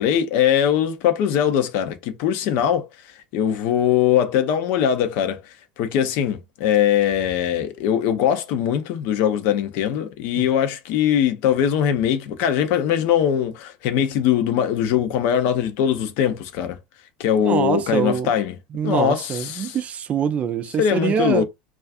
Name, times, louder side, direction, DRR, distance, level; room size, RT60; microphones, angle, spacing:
voice 1, 0.0-2.9 3.3-5.4 5.8-16.8 17.2-18.5 18.8-19.8 20.8-21.4, left 9 dB, 55° left, 0.6 m, -21 dB
voice 2, 17.4-18.3 18.7-21.4, right 7 dB, 30° right, 0.4 m, -24 dB
2.4 x 2.4 x 2.4 m
figure-of-eight pair, 75°, 4 cm